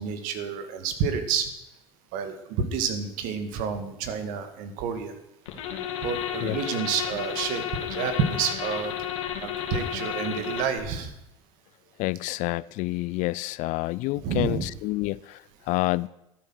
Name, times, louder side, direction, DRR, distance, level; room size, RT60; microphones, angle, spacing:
voice 1, 0.0-1.5 2.1-5.1 6.0-7.6 7.9-8.9 9.4-11.1 14.2-14.7, right 6 dB, 65° right, 2.1 m, -29 dB
sound 1, 5.5-10.8, left 9 dB, 80° left, 2.6 m, -32 dB
voice 2, 12.0-16.1, left 20 dB, 55° left, 0.5 m, -28 dB
13.0 x 9.2 x 6.4 m
hypercardioid pair, 85°, 15 cm